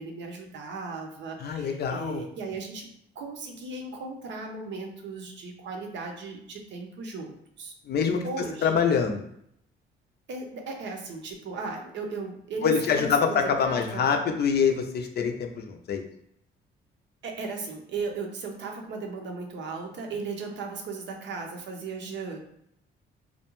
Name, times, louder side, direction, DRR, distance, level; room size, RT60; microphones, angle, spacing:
voice 1, 0.0-2.9 3.2-7.7 8.2-8.8 10.3-14.1 17.2-22.4, right 4 dB, 65° right, 2 dB, 0.6 m, -36 dB
voice 2, 1.4-2.2 7.9-9.2 12.6-16.0, left 6 dB, 55° left, 4 dB, 0.5 m, -25 dB
2.4 x 2.1 x 2.9 m, 0.71 s
cardioid pair, 90°, 20 cm